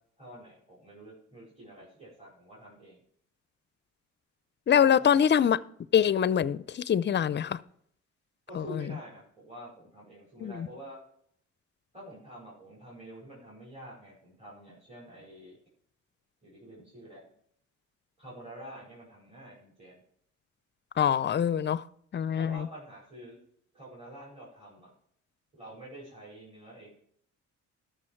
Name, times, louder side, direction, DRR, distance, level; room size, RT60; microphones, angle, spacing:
voice 1, 0.2-3.0 4.7-5.2 8.5-11.0 11.9-15.6 16.4-17.3 18.2-20.0 22.4-23.4 23.7-24.9 25.5-27.0, right 1 dB, 20° right, 5.3 m, -47 dB
voice 2, 4.7-5.6 5.9-7.6 8.6-8.7 10.4-10.7 21.0-21.8 22.1-22.7, left 8 dB, 35° left, 0.5 m, -24 dB
13.0 x 6.4 x 4.5 m
cardioid pair, 90°, 30 cm